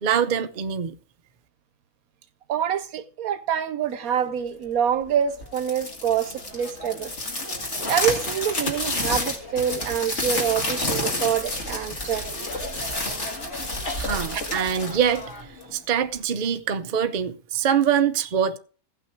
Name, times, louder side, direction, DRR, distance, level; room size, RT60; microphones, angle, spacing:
voice 1, 0.0-1.0 14.0-18.6, right 8 dB, 45° right, 0.6 m, -24 dB
voice 2, 2.5-7.1 7.8-12.3 14.3-14.4, right 8 dB, 75° right, 1.2 m, -26 dB
sound 1, 5.4-15.8, left 2 dB, 50° left, 2.4 m, -30 dB
16.0 x 5.8 x 4.5 m
omnidirectional pair, 1.6 m